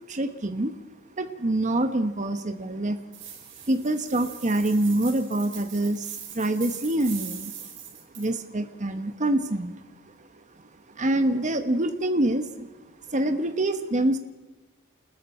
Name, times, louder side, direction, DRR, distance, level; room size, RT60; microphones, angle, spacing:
voice 1, 0.1-0.8 1.2-3.0 3.7-7.5 8.2-9.7 11.0-12.7 13.1-14.2, right 1 dB, 35° right, 7 dB, 1.1 m, -25 dB
sound 1, 3.1-8.3, right 8 dB, 65° right, 5.0 m, -41 dB
28.5 x 20.5 x 4.4 m, 1.2 s
head